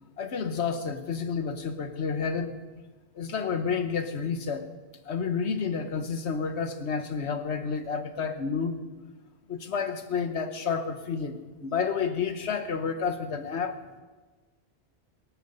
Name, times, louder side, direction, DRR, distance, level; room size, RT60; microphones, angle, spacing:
voice 1, 0.2-2.6 3.1-4.7 5.0-8.8 9.5-13.8, left 6 dB, 80° left, 9 dB, 1.4 m, -30 dB
25.0 x 8.9 x 5.5 m, 1.3 s
omnidirectional pair, 1.1 m